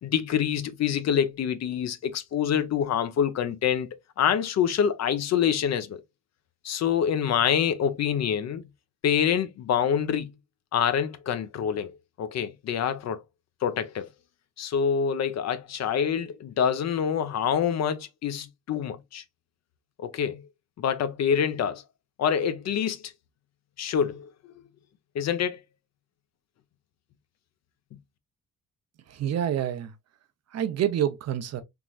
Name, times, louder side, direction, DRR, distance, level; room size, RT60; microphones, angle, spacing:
voice 1, 0.0-3.9 4.2-6.0 6.6-8.6 9.0-10.3 10.7-11.9 12.2-13.2 13.6-14.1 14.6-19.2 20.0-20.4 20.8-21.8 22.2-23.1 23.8-24.3 25.1-25.6, left 8 dB, 60° left, 0.7 m, -26 dB
voice 2, 29.1-29.9 30.5-31.6, right 10 dB, 60° right, 0.6 m, -27 dB
3.6 x 3.0 x 2.3 m
cardioid pair, 90°, 30 cm